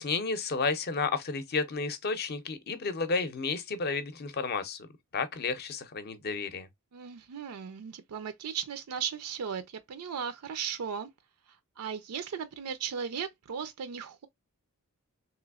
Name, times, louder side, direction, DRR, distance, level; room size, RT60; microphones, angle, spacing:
voice 1, 0.0-4.9 5.1-6.7, left 4 dB, 45° left, 0.6 m, -32 dB
voice 2, 6.9-11.1 11.8-14.3, right 7 dB, 80° right, 0.4 m, -36 dB
3.3 x 3.0 x 2.3 m
head